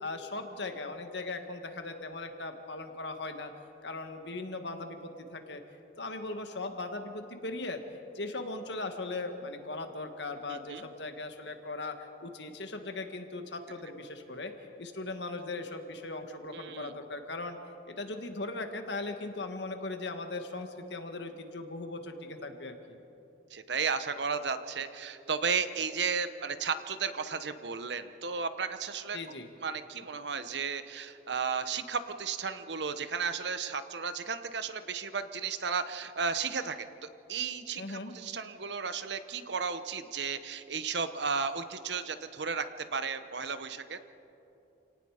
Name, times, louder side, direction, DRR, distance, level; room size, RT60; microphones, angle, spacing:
voice 1, 0.0-3.5 3.8-5.6 6.0-7.8 8.1-14.5 14.8-17.6 17.8-23.0 29.1-29.5 37.8-38.1, left 2 dB, 65° left, 6 dB, 1.7 m, -39 dB
voice 2, 10.5-10.9 16.5-16.9 23.5-29.2 29.6-44.0, right 5 dB, 65° right, 11 dB, 0.9 m, -34 dB
28.5 x 18.0 x 5.0 m, 2.9 s
head